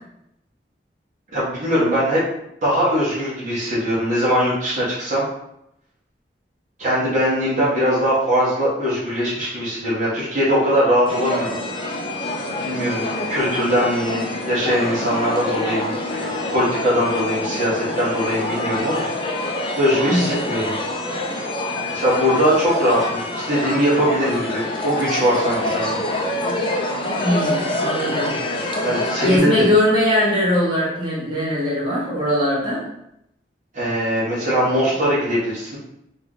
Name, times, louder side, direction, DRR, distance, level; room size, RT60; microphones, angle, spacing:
voice 1, 1.3-2.2 2.6-5.2 6.8-11.6 12.6-19.0 19.7-20.7 21.9-26.0 28.8-29.5 33.7-35.8, equal, 45° right, -9 dB, 1.4 m, -21 dB
sound 1, 11.1-29.4, left 1 dB, 30° left, 0.5 m, -26 dB
voice 2, 27.2-28.3 29.2-32.8, left 1 dB, 25° right, -7 dB, 1.5 m, -20 dB
3.9 x 3.1 x 3.1 m, 0.79 s
head